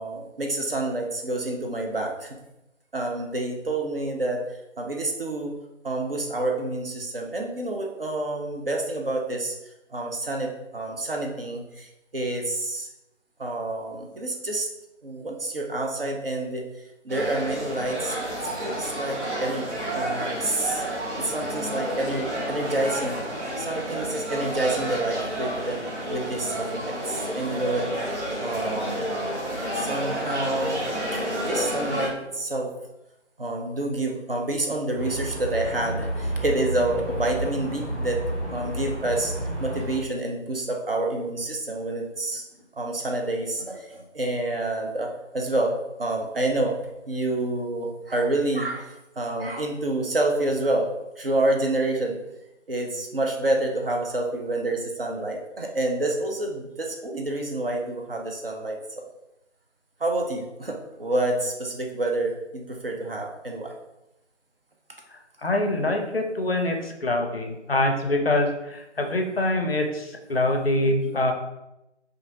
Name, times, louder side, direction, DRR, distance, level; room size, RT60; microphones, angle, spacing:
voice 1, 0.0-2.3 2.9-4.4 4.8-5.5 5.8-9.6 9.9-11.9 12.1-12.9 13.4-14.7 15.0-16.7 17.0-18.2 18.6-20.8 21.2-23.2 23.6-25.8 26.1-27.9 28.4-29.1 29.8-30.8 31.5-32.7 33.4-38.2 38.5-42.4 42.8-46.8 47.1-50.9 51.2-52.2 52.7-58.8 60.0-63.8, right 2 dB, 50° right, 1 dB, 0.4 m, -28 dB
sound 1, 17.1-32.1, right 1 dB, 70° right, 1.0 m, -30 dB
sound 2, 35.0-40.0, right 1 dB, 10° left, 1.2 m, -31 dB
voice 2, 65.4-71.3, left 1 dB, 55° left, 3 dB, 0.4 m, -24 dB
2.7 x 2.4 x 2.6 m, 0.91 s
figure-of-eight pair, 160°, 36 cm